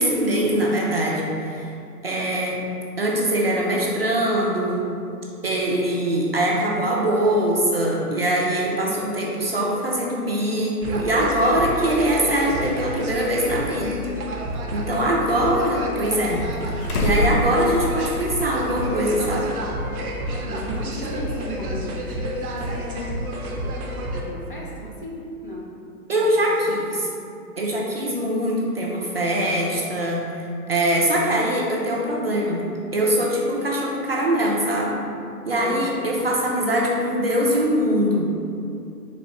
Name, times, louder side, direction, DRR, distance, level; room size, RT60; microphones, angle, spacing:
voice 1, 0.0-1.7 2.0-2.6 3.0-4.8 5.4-14.0 14.7-16.4 17.0-19.6 26.1-27.1 27.6-30.2 30.7-32.6 32.9-35.0 35.5-38.3, right 1 dB, 40° right, -3 dB, 0.4 m, -22 dB
sound 1, 10.8-24.2, equal, 65° right, 0.8 m, -30 dB
sound 2, 13.2-13.3 14.2-15.1 16.0-18.3 18.6-18.7 20.3-20.4, left 1 dB, 70° left, 0.7 m, -27 dB
voice 2, 20.4-23.2 24.1-25.7 26.1-26.5 35.5-35.8 37.2-37.3, equal, 35° left, -4 dB, 0.4 m, -35 dB
4.1 x 2.5 x 4.3 m, 2.6 s
hypercardioid pair, 150°, 47 cm